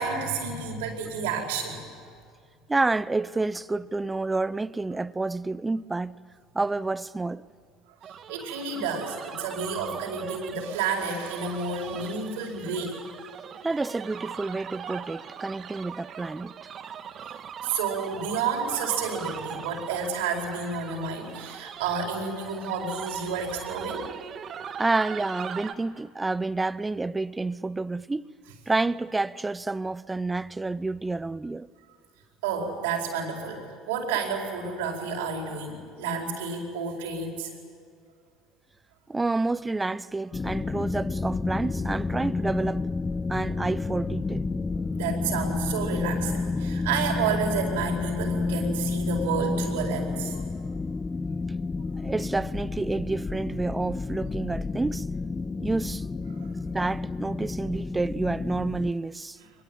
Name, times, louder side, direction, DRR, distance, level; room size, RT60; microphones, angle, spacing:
voice 1, 0.0-1.8 8.3-13.0 17.6-24.1 32.4-37.5 44.9-50.4 56.4-56.5, right 5 dB, 85° right, 4.7 m, -30 dB
voice 2, 2.7-6.2 6.5-7.4 13.6-16.5 24.8-28.3 28.7-31.7 39.1-42.9 43.3-44.5 52.0-55.1 55.6-56.1 56.7-59.4, right 3 dB, 15° right, 0.6 m, -29 dB
sound 1, 8.0-25.7, right 8 dB, 45° right, 1.5 m, -40 dB
sound 2, 40.3-58.9, left 3 dB, 25° left, 0.8 m, -30 dB
23.5 x 21.5 x 9.1 m
hypercardioid pair, 80°, 0 cm